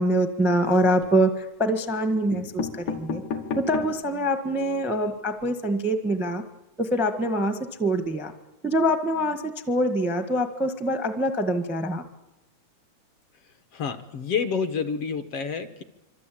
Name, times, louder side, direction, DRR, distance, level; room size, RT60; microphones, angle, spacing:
voice 1, 0.0-3.2 3.6-6.4 6.8-8.3 8.6-12.0, equal, ahead, 7 dB, 0.6 m, -24 dB
sound 1, 0.6-1.2 1.9-2.0 2.3-4.1 4.6-4.7 4.9-5.0 5.3-5.5, left 5 dB, 80° left, 3.2 m, -33 dB
voice 2, 13.7-15.8, left 6 dB, 60° left, 8 dB, 1.8 m, -28 dB
25.5 x 25.0 x 8.7 m, 1.0 s
omnidirectional pair, 3.4 m